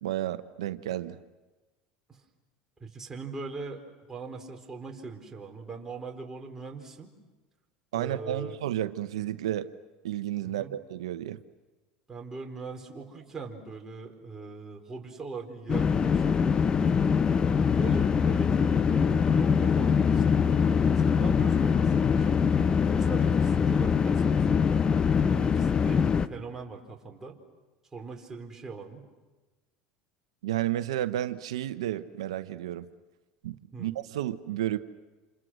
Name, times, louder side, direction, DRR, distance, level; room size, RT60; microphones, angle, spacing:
voice 1, 0.0-1.2 7.9-9.7 10.0-11.4 30.4-32.9 33.4-34.8, right 13 dB, 90° right, 12 dB, 0.9 m, -32 dB
voice 2, 2.8-3.8 4.1-7.1 7.9-8.6 10.4-10.7 12.1-16.5 17.8-20.6 21.0-22.4 22.8-24.4 25.2-27.4 27.9-29.1 33.7-33.9, right 4 dB, 15° right, 1 dB, 4.2 m, -41 dB
sound 1, 15.7-26.3, left 6 dB, 30° left, 0.9 m, -23 dB
29.0 x 27.5 x 6.3 m, 1.2 s
supercardioid pair, 100°, 3 cm